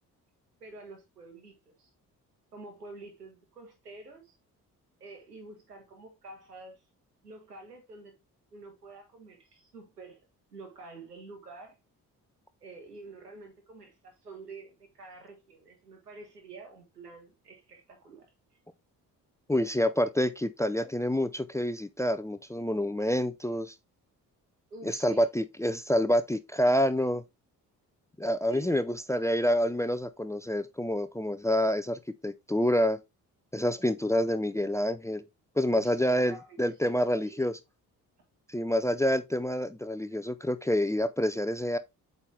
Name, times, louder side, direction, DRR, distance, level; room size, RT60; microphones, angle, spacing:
voice 1, 0.6-1.9 2.5-4.3 5.0-6.8 7.2-8.1 8.5-10.2 10.5-11.8 12.6-18.3 24.7-25.2 28.5-28.8 35.7-37.5, right 3 dB, 85° right, 1.6 m, -48 dB
voice 2, 19.5-23.7 24.8-27.2 28.2-33.0 33.5-35.2 35.6-37.6 38.5-41.8, equal, 5° left, 0.5 m, -27 dB
8.2 x 4.0 x 3.3 m
figure-of-eight pair, 40°, 46 cm